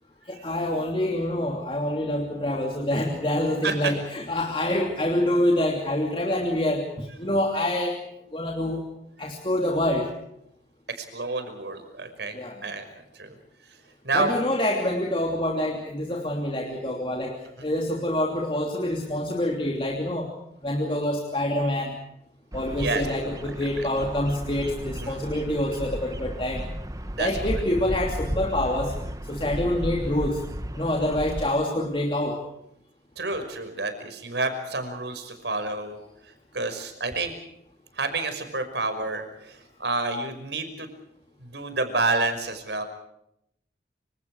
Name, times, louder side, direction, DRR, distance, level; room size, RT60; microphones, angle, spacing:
voice 1, 0.3-8.0 8.3-8.9 9.2-10.1 12.3-12.6 14.1-17.4 17.6-20.3 20.6-22.0 22.5-26.6 27.2-28.9 29.3-30.4 30.7-32.4, left 1 dB, 30° left, 0 dB, 2.9 m, -26 dB
voice 2, 11.0-12.4 12.6-12.8 13.1-13.3 14.0-14.3 17.6-17.7 22.8-23.1 25.0-25.2 27.1-27.6 33.2-36.0 36.5-37.3 38.0-40.9 41.4-42.8, right 3 dB, 65° right, 8 dB, 5.6 m, -29 dB
Bird vocalization bird call bird song, 22.5-31.5, equal, 20° right, 1.3 m, -34 dB
29.0 x 26.0 x 4.8 m, 0.78 s
head